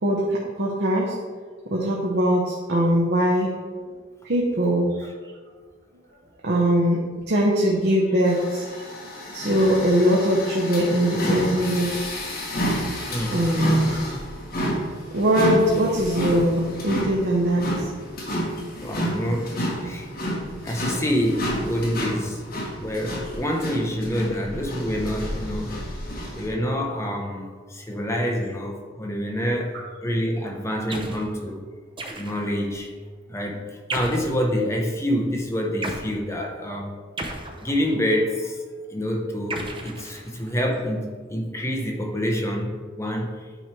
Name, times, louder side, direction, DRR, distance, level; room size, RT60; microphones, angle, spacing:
voice 1, 0.0-1.1 1.7-3.5 4.2-5.1 6.4-8.7 9.3-12.1 13.3-14.0 15.1-17.9, equal, 60° right, -3 dB, 0.9 m, -21 dB
sound 1, 8.2-26.5, equal, 50° left, 1.4 m, -30 dB
voice 2, 13.1-13.4 18.8-19.5 19.8-20.1 20.6-22.4 22.8-25.8 26.3-29.7 30.0-31.6 32.2-32.9 33.3-33.6 33.9-36.9 37.6-38.5 38.9-43.3, equal, 15° left, 1 dB, 0.9 m, -26 dB
sound 2, 30.9-31.3 32.0-32.6 33.9-34.4 35.8-36.1 37.2-38.0 39.5-40.6, right 2 dB, 25° right, 0.7 m, -34 dB
9.1 x 3.2 x 4.4 m, 1.5 s
head